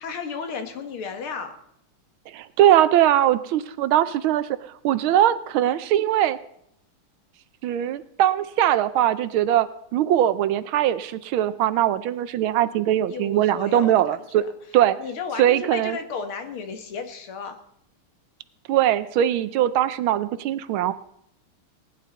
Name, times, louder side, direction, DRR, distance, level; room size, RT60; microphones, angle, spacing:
voice 1, 0.0-1.6 13.1-14.5 15.0-17.6, left 5 dB, 75° left, 7 dB, 2.2 m, -34 dB
voice 2, 2.3-6.4 7.6-9.7 9.9-14.4 14.7-15.0 15.4-16.0 18.7-20.9, right 11 dB, 75° right, 14 dB, 1.4 m, -21 dB
19.0 x 10.5 x 4.0 m, 0.74 s
omnidirectional pair, 2.4 m